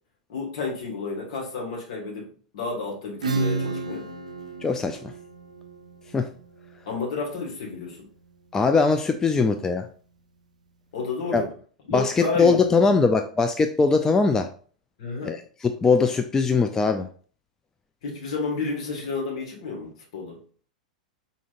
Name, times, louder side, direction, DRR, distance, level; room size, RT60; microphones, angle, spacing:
voice 1, 0.3-4.1 6.9-8.0 10.9-11.5 11.9-12.6 15.0-15.4 18.0-20.4, left 4 dB, 60° left, -2 dB, 1.8 m, -31 dB
Acoustic guitar / Strum, 3.2-8.6, right 3 dB, 75° right, 0.5 m, -32 dB
voice 2, 4.6-5.0 6.1-6.3 8.5-9.9 11.3-11.4 11.9-14.5 15.2-17.1, left 4 dB, 15° left, 7 dB, 0.3 m, -21 dB
4.9 x 3.8 x 2.5 m, 0.43 s
figure-of-eight pair, 95°, 4 cm